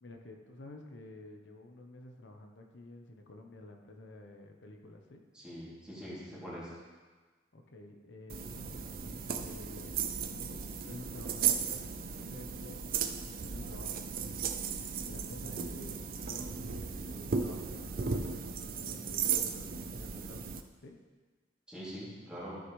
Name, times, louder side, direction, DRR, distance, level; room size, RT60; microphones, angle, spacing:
voice 1, 0.0-5.2 7.5-14.0 15.0-21.0, left 2 dB, 85° left, 3 dB, 0.9 m, -51 dB
voice 2, 5.3-6.8 15.4-15.7 21.7-22.6, equal, 5° right, -9 dB, 2.6 m, -44 dB
sound 1, 8.3-20.6, right 6 dB, 50° right, 0.5 m, -36 dB
13.0 x 6.3 x 3.1 m, 1.4 s
head